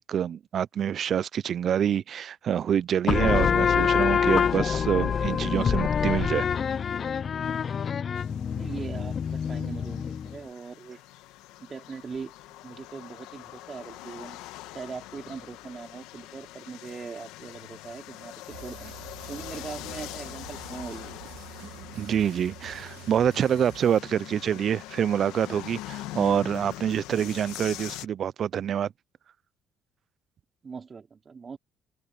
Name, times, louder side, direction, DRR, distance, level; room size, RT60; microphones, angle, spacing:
voice 1, 0.0-6.5 21.7-28.9, right 9 dB, 50° right, 0.5 m, -26 dB
sound 1, 3.1-10.4, left 7 dB, 45° left, 0.4 m, -26 dB
sound 2, 8.2-28.1, left 16 dB, 85° left, 1.3 m, -43 dB
voice 2, 8.5-11.0 11.6-12.3 12.6-14.4 14.7-18.9 19.3-21.1 27.2-27.3 30.6-31.6, right 5 dB, 35° right, 4.0 m, -40 dB
sound 3, 18.5-24.0, right 17 dB, 85° right, 3.9 m, -47 dB
supercardioid pair, 90°, 0 cm